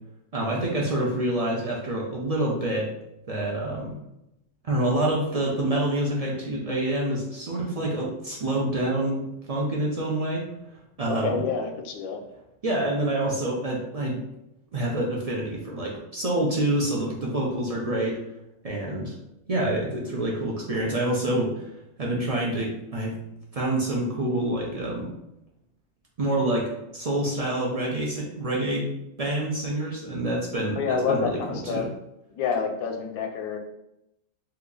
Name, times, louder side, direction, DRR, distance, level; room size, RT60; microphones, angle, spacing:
voice 1, 0.3-2.9 3.3-4.0 4.6-10.5 11.0-11.4 12.6-14.2 14.7-18.2 18.6-19.2 19.5-21.7 22.0-23.2 23.5-25.1 26.2-28.9 29.2-31.9, right 1 dB, 50° right, -3 dB, 0.4 m, -27 dB
voice 2, 11.1-12.2 30.8-31.9 32.3-33.6, left 6 dB, 85° left, 4 dB, 1.0 m, -28 dB
2.9 x 2.4 x 3.7 m, 0.86 s
omnidirectional pair, 1.4 m